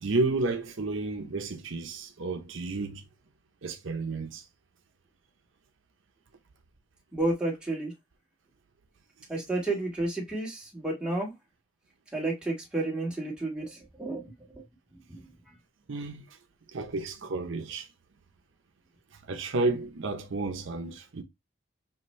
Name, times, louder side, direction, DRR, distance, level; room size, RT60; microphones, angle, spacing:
voice 1, 0.0-3.0 3.6-4.4 15.9-16.3 16.7-17.9 19.3-21.2, right 3 dB, 65° right, 0.7 m, -31 dB
voice 2, 7.1-7.9 9.3-11.3 12.1-14.6 15.1-15.3, right 2 dB, 5° right, 1.5 m, -31 dB
6.5 x 2.5 x 3.1 m
head